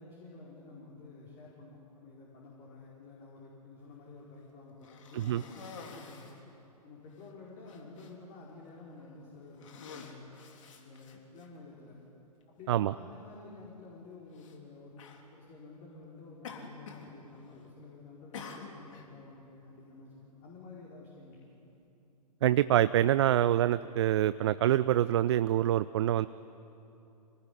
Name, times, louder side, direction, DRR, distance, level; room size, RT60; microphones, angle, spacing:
voice 1, 0.0-6.3 6.8-10.3 10.8-11.9 12.6-15.0 15.3-21.7, left 3 dB, 30° left, -4 dB, 5.0 m, -51 dB
Cough, 4.8-6.4 7.2-7.3 7.6-8.1 8.9-9.1 9.5-11.5 12.4-12.5 14.3-14.6 15.0-15.2 16.4-17.1 17.4-17.8 18.3-19.1, left 5 dB, 50° left, 3.3 m, -48 dB
voice 2, 22.4-26.3, right 12 dB, 45° right, 15 dB, 0.5 m, -26 dB
26.5 x 19.5 x 9.9 m, 2.9 s
figure-of-eight pair, 115°, 20 cm